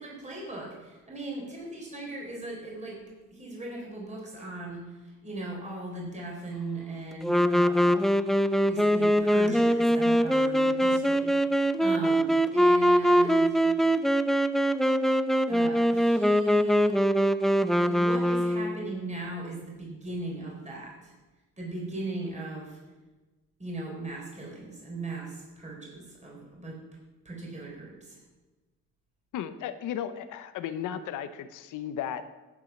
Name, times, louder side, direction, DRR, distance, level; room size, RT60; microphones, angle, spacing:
voice 1, 0.0-3.0 3.3-8.1 8.7-13.6 15.5-17.0 17.7-21.1 21.6-22.8 23.6-26.8 27.2-28.2, right 2 dB, 25° right, -2 dB, 4.1 m, -38 dB
Wind instrument woodwind instrument, 7.2-18.9, equal, ahead, 0.5 m, -23 dB
voice 2, 29.3-32.2, left 9 dB, 80° left, 11 dB, 0.8 m, -35 dB
10.5 x 8.3 x 5.9 m, 1.2 s
cardioid pair, 90°, 30 cm